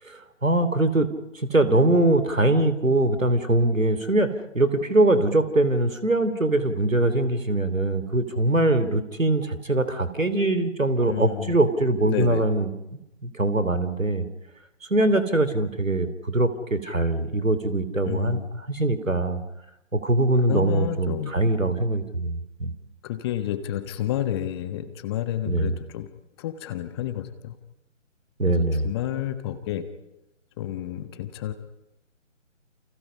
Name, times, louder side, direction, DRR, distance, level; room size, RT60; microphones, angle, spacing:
voice 1, 0.0-1.1 1.3-14.3 14.9-19.4 19.9-22.7 25.4-25.8 28.4-28.9, right 2 dB, 90° right, 12 dB, 3.2 m, -22 dB
voice 2, 11.0-11.6 12.1-12.4 18.0-18.5 20.5-21.4 23.0-26.1 26.4-27.6 28.6-29.8 30.6-31.5, left 12 dB, 20° left, 10 dB, 1.3 m, -30 dB
29.5 x 28.5 x 5.6 m, 0.88 s
figure-of-eight pair, 140°, 39 cm